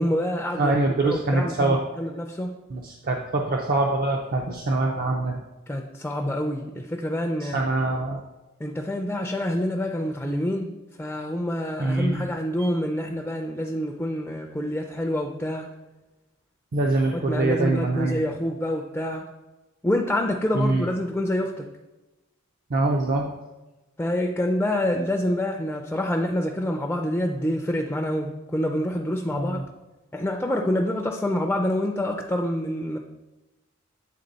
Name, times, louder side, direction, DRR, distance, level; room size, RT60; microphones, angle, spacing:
voice 1, 0.0-0.8 1.0-2.5 5.7-7.6 8.6-10.7 11.0-15.7 16.8-19.3 19.8-21.7 24.0-29.6 30.1-33.0, left 1 dB, 10° left, 2 dB, 0.4 m, -27 dB
voice 2, 0.6-1.8 2.7-5.4 7.4-8.2 11.8-12.3 12.6-12.7 16.7-18.2 20.5-20.9 22.7-23.3 29.3-29.6, right 2 dB, 45° right, 1 dB, 0.5 m, -24 dB
8.5 x 3.6 x 4.0 m, 1.1 s
head